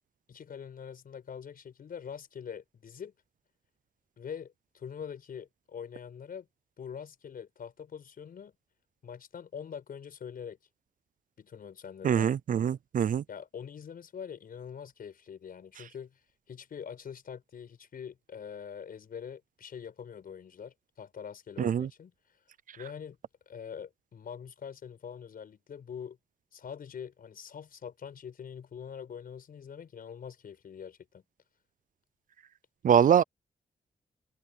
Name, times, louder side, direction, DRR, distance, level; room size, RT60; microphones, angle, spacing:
voice 1, 0.3-3.1 4.2-6.5 6.8-8.5 9.0-10.6 11.4-12.3 13.3-16.2 16.5-22.1 22.8-23.2 23.5-26.2 26.5-31.2, left 7 dB, 70° left, 5.6 m, -44 dB
voice 2, 12.0-13.2 21.6-21.9 32.8-33.2, right 8 dB, 60° right, 0.5 m, -24 dB
wide cardioid pair, 140°, 15 cm